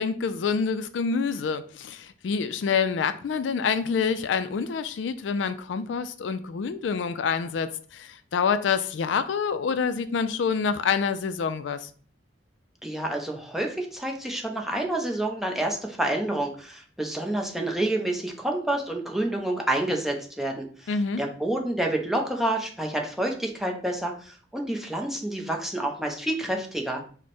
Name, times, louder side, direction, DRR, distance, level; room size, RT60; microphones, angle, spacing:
voice 1, 0.0-11.9 20.9-21.2, left 6 dB, 85° left, 0.4 m, -27 dB
voice 2, 12.8-20.9 21.2-27.0, right 1 dB, ahead, 0.7 m, -28 dB
4.6 x 2.2 x 4.2 m
head